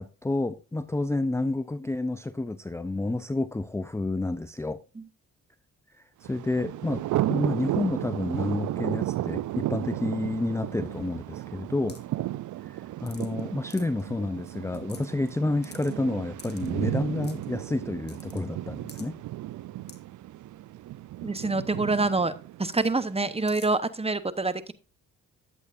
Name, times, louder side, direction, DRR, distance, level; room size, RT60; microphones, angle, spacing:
voice 1, 0.0-4.8 5.9-7.0 7.3-12.0 12.6-19.1, left 2 dB, 10° left, 0.5 m, -30 dB
Thunder, 6.2-23.2, right 15 dB, 60° right, 0.4 m, -34 dB
sound 1, 11.9-12.1 13.1-13.4 13.7-14.0 14.5-14.6 14.7-15.3 15.6-15.9 16.4-16.7 17.2-17.5 18.1-18.4 18.9-19.0 19.9-20.0 21.4-21.5 21.7-21.8 22.7-22.9 23.5-23.7, left 4 dB, 30° left, 2.1 m, -47 dB
voice 2, 21.2-22.3 22.6-24.7, right 3 dB, 15° right, 1.0 m, -26 dB
11.0 x 8.1 x 2.6 m
supercardioid pair, 55°, 35 cm